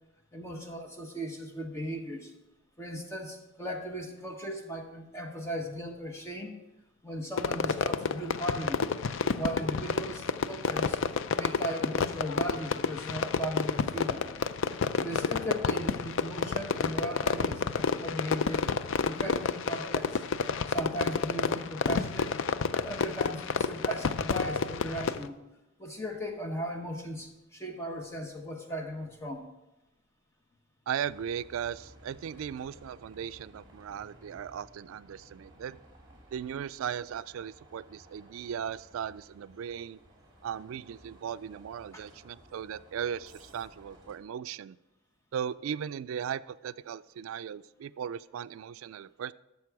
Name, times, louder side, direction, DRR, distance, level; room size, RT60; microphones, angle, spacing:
voice 1, 0.3-2.3 2.8-6.5 7.0-8.9 9.4-11.0 11.4-14.3 15.0-18.7 19.0-25.4 25.8-29.5 41.9-42.0, equal, 15° left, 2 dB, 1.0 m, -37 dB
Fireworks, 7.4-25.3, left 5 dB, 65° left, 0.4 m, -30 dB
voice 2, 30.9-35.8 36.3-40.0 40.4-44.8 45.3-49.3, right 8 dB, 75° right, 17 dB, 0.3 m, -37 dB
Bus, 31.0-44.2, equal, 25° right, 2.5 m, -56 dB
13.0 x 6.8 x 4.7 m, 0.98 s
head